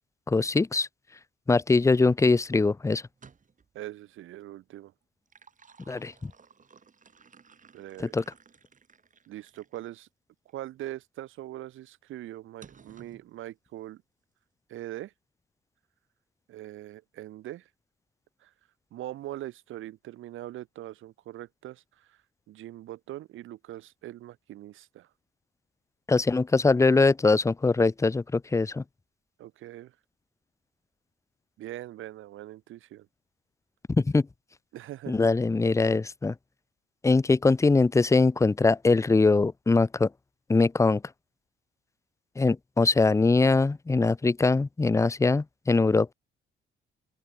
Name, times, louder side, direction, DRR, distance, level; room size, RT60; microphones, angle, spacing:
voice 1, 0.3-0.9 1.5-3.0 5.9-6.3 8.0-8.2 26.1-28.8 33.9-34.2 35.1-36.3 37.0-40.1 40.5-41.0 42.4-46.1, left 3 dB, 15° left, 0.6 m, -22 dB
sound 1, 3.1-3.8 5.0-9.9 10.5-10.6 12.6-13.3, right 6 dB, 40° right, 6.9 m, -56 dB
voice 2, 3.7-4.9 7.7-8.2 9.3-10.1 10.5-14.0 14.7-15.1 16.5-17.7 18.4-18.5 18.9-22.2 22.5-25.1 29.4-29.9 31.6-33.1 34.7-35.3, right 14 dB, 85° right, 3.1 m, -41 dB
open air
cardioid pair, 90°, 20 cm